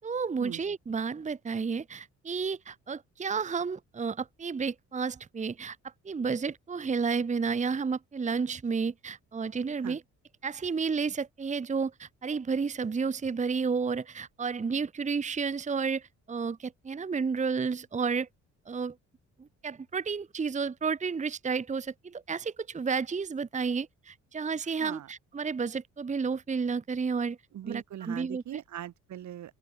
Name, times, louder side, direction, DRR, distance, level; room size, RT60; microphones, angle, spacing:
voice 1, 0.0-10.0 10.4-18.3 18.7-19.0 19.4-27.4 27.6-28.4, right 5 dB, 25° right, 0.9 m, -31 dB
voice 2, 27.5-29.5, right 11 dB, 70° right, 2.4 m, -40 dB
open air
cardioid pair, 90°, 30 cm